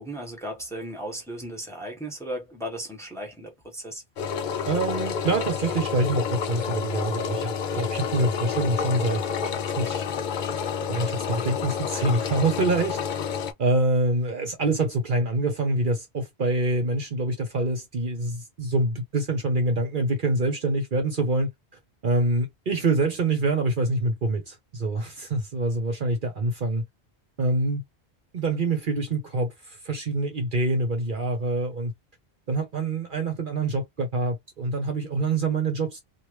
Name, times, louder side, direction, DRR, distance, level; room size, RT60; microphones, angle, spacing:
voice 1, 0.0-4.0, right 1 dB, 5° left, 1.1 m, -36 dB
Engine, 4.2-13.5, left 6 dB, 55° left, 0.6 m, -29 dB
voice 2, 4.7-10.0 10.9-13.0 13.6-21.5 22.0-26.8 27.4-27.8 28.3-31.9 32.5-36.0, right 2 dB, 50° right, 0.9 m, -26 dB
3.0 x 2.5 x 3.1 m
omnidirectional pair, 1.1 m